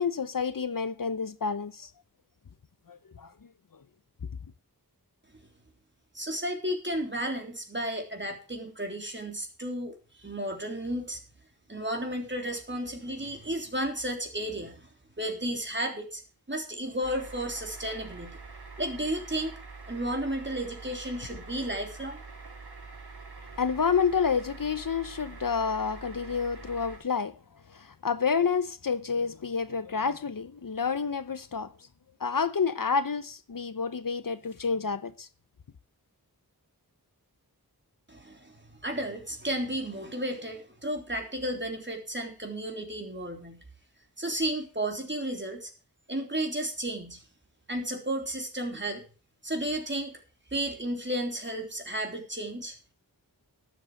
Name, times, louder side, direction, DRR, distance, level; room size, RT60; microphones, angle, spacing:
voice 1, 0.0-1.9 2.9-3.3 21.3-21.4 23.6-27.4 27.7-31.7 32.2-35.3, left 5 dB, 60° left, 0.9 m, -29 dB
voice 2, 6.1-11.2 11.7-14.9 15.2-16.2 16.5-18.4 18.8-19.5 19.9-22.2 38.1-43.6 44.2-45.7 46.1-47.2 47.7-49.0 49.4-50.1 50.5-52.8, right 1 dB, 30° right, 3.3 m, -33 dB
sound 1, 17.0-27.0, right 4 dB, 80° right, 3.6 m, -45 dB
12.5 x 8.0 x 6.1 m
wide cardioid pair, 65°, 38 cm